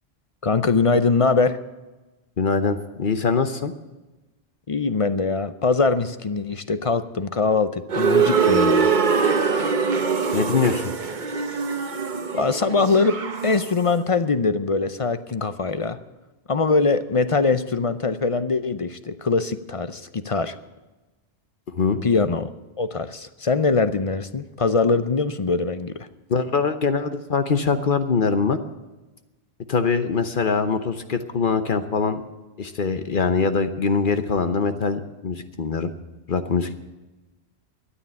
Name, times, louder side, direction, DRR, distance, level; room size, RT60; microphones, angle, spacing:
voice 1, 0.4-1.6 4.7-8.9 12.3-13.2 13.4-16.0 16.5-20.6 22.0-22.5 22.8-26.1, left 4 dB, 40° left, 12 dB, 0.6 m, -22 dB
voice 2, 2.4-3.7 10.3-10.9 21.8-22.0 26.3-28.6 29.7-32.2 32.6-35.9 36.3-36.8, left 5 dB, 55° left, 9 dB, 1.0 m, -23 dB
sound 1, 7.9-13.8, right 5 dB, 50° right, 1.1 m, -22 dB
13.0 x 9.7 x 8.8 m, 1.1 s
omnidirectional pair, 1.1 m